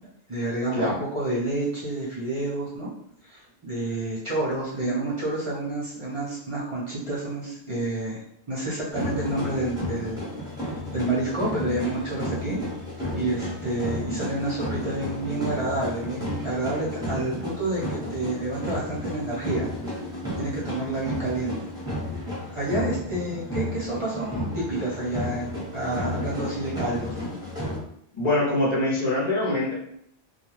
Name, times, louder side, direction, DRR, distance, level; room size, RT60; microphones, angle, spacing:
voice 1, 0.3-2.9 3.2-10.2 10.9-12.6 13.1-19.7 20.4-21.6 22.5-27.3, right 2 dB, 30° right, -8 dB, 0.8 m, -29 dB
sound 1, 8.9-27.8, left 1 dB, 5° right, 0.8 m, -33 dB
voice 2, 28.1-29.7, left 2 dB, 45° left, -7 dB, 0.7 m, -24 dB
2.2 x 2.2 x 3.1 m, 0.72 s
omnidirectional pair, 1.1 m